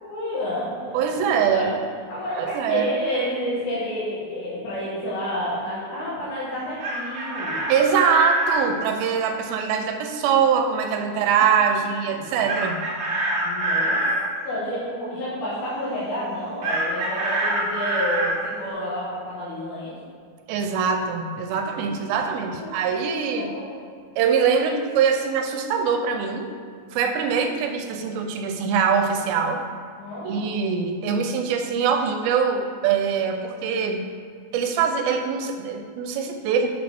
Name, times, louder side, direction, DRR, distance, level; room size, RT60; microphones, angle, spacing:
voice 1, 0.0-1.7 2.1-7.7 11.2-11.3 12.1-12.3 13.4-14.1 14.4-19.9 21.9-22.1 22.5-22.8 23.3-23.7 24.6-24.7 30.0-30.5, left 1 dB, 85° left, -10 dB, 3.5 m, -30 dB
voice 2, 0.9-1.8 2.4-2.9 7.7-12.8 20.5-23.5 24.2-26.5 26.9-29.6 30.2-34.1 34.5-36.7, right 6 dB, 90° right, 5 dB, 2.5 m, -23 dB
Chicken rooster, 6.5-8.6 12.5-14.2 16.6-18.4, right 2 dB, 55° right, 1.9 m, -25 dB
8.8 x 7.1 x 3.5 m, 2.1 s
omnidirectional pair, 4.2 m